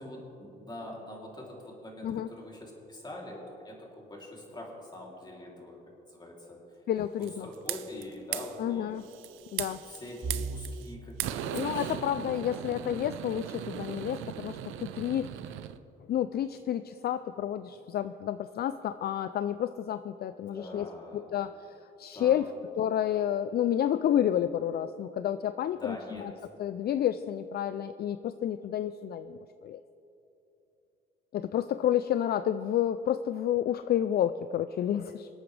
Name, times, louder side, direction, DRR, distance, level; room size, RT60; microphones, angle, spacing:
voice 1, 0.0-5.8 6.1-6.6 7.2-9.0 9.7-12.0 12.6-12.8 20.5-21.3 22.1-22.4 25.8-26.5, left 1 dB, 20° left, -3 dB, 3.1 m, -44 dB
voice 2, 6.9-7.5 8.6-9.1 9.5-9.8 11.5-15.4 16.1-21.5 22.0-22.5 22.8-26.3 26.6-29.8 31.3-35.3, left 10 dB, 55° left, 12 dB, 0.4 m, -30 dB
sound 1, 7.2-8.0 8.3-8.6 9.0-10.9 11.2-15.8, right 11 dB, 90° right, 0.5 m, -38 dB
sound 2, 10.2-22.1 22.5-22.7 23.1-23.3 24.2-24.6, right 4 dB, 35° right, 3.0 m, -47 dB
26.0 x 8.8 x 3.3 m, 2.9 s
cardioid pair, 90°, 20 cm